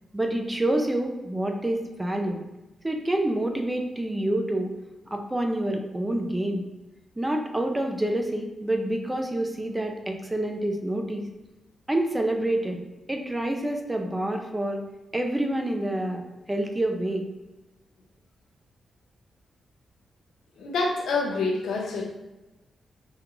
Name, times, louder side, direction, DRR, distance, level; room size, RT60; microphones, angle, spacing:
voice 1, 0.1-2.4 2.8-4.7 5.1-6.6 7.2-11.2 11.9-12.8 13.1-14.8 15.1-16.2 16.5-17.2, right 1 dB, 10° right, 3 dB, 0.4 m, -27 dB
voice 2, 20.6-22.1, left 3 dB, 85° left, 0 dB, 0.6 m, -27 dB
3.6 x 2.3 x 3.0 m, 1.1 s
wide cardioid pair, 120°, 0 cm